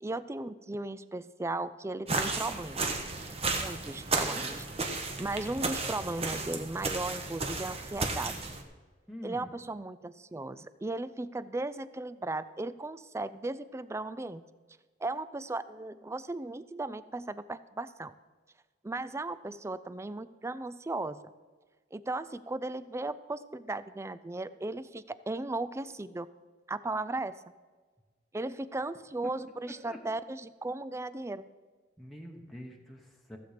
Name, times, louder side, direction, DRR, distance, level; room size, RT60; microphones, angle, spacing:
voice 1, 0.0-2.9 3.5-8.4 9.2-14.4 15.0-18.1 18.8-21.3 21.9-26.3 26.7-27.4 28.3-31.4, right 2 dB, 15° right, 15 dB, 0.4 m, -36 dB
sound 1, 2.1-8.6, right 3 dB, 35° right, 1.3 m, -33 dB
voice 2, 9.1-9.5 29.9-30.0 32.0-33.4, equal, ahead, 0 dB, 1.1 m, -45 dB
15.5 x 7.8 x 5.1 m, 1.4 s
head